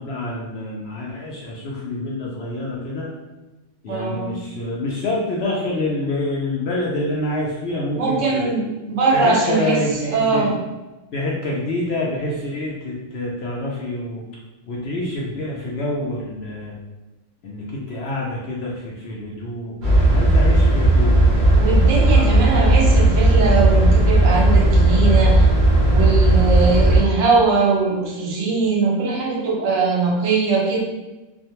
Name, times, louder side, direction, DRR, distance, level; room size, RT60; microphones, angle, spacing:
voice 1, 0.0-3.1 3.8-8.4 9.1-10.5 11.1-14.2 14.7-16.7 17.4-22.3, left 1 dB, 65° left, -4 dB, 0.7 m, -27 dB
voice 2, 3.9-4.4 7.9-10.6 21.5-25.5 25.9-30.8, right 4 dB, 75° right, -1 dB, 0.9 m, -21 dB
sound 1, 19.8-27.0, right 1 dB, 50° right, 0.7 m, -15 dB
2.4 x 2.2 x 2.8 m, 1.1 s
omnidirectional pair, 1.3 m